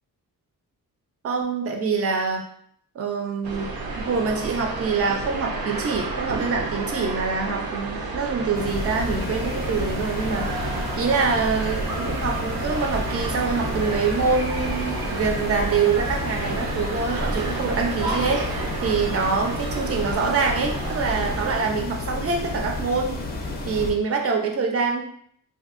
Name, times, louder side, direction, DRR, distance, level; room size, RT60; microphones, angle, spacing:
voice 1, 1.2-2.4 2.9-3.7 3.9-23.2 23.7-25.0, right 5 dB, 40° right, 2 dB, 0.5 m, -25 dB
sound 1, 3.4-21.5, right 3 dB, 85° right, 0.7 m, -31 dB
sound 2, 8.5-23.9, left 2 dB, 30° left, 0.4 m, -31 dB
3.4 x 2.6 x 2.4 m, 0.64 s
wide cardioid pair, 170°, 36 cm